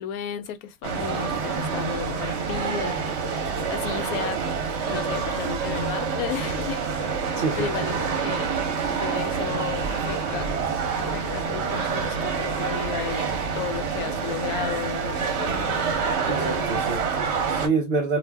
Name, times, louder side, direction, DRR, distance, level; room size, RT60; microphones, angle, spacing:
voice 1, 0.0-4.4 4.9-7.2 7.6-8.5 8.9-10.6 11.0-15.8 16.3-16.8, left 9 dB, 75° left, 1.0 m, -34 dB
sound 1, 0.8-17.7, right 5 dB, 55° right, 0.9 m, -27 dB
voice 2, 7.4-7.7 16.3-18.2, right 4 dB, 75° right, 0.5 m, -27 dB
2.6 x 2.2 x 3.3 m
omnidirectional pair, 1.6 m